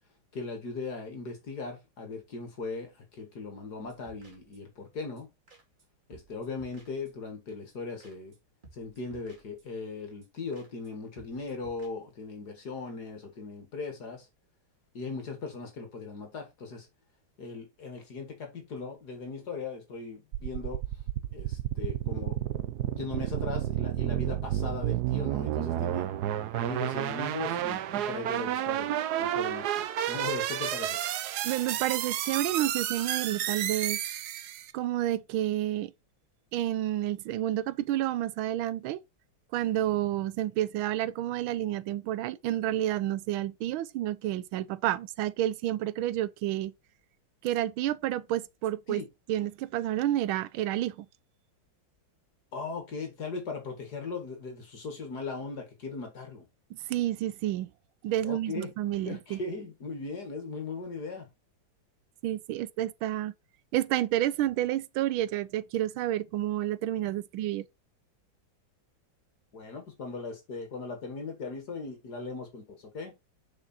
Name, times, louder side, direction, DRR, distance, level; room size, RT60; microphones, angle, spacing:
voice 1, 0.3-5.3 6.1-8.3 8.7-14.3 14.9-16.9 17.4-20.8 21.3-26.1 26.5-31.0 48.9-49.1 52.5-56.5 58.2-58.7 59.1-61.3 69.5-73.1, left 4 dB, 55° left, 2.3 m, -38 dB
sound 1, 3.8-4.8 5.2-5.3 5.5-5.8 6.1-7.3 7.7-8.4 8.6-9.9 10.2-10.3 10.5-10.9 11.2-11.9, right 3 dB, 25° right, 2.1 m, -57 dB
sound 2, 20.3-34.7, right 12 dB, 65° right, 1.0 m, -31 dB
voice 2, 31.4-34.0 34.7-35.9 36.5-39.0 39.5-46.7 47.4-49.0 49.3-51.1 56.9-57.7 58.0-59.4 62.2-63.3 63.7-67.7, right 13 dB, 85° right, 1.5 m, -30 dB
6.6 x 5.0 x 4.2 m
omnidirectional pair, 2.2 m